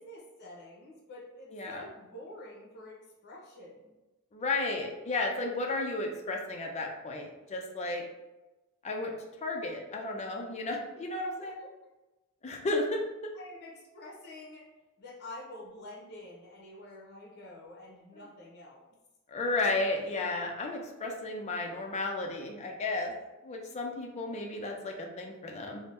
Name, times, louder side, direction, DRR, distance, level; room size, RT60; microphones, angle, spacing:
voice 1, 0.0-3.9 13.3-14.7 15.0-18.8, left 1 dB, 50° left, -4 dB, 0.8 m, -48 dB
voice 2, 1.5-1.8 4.3-8.0 8.8-9.1 9.4-11.6 12.4-13.0 19.3-23.1 23.4-25.8, left 2 dB, 30° left, 1 dB, 0.4 m, -33 dB
2.7 x 2.1 x 3.4 m, 1.1 s
head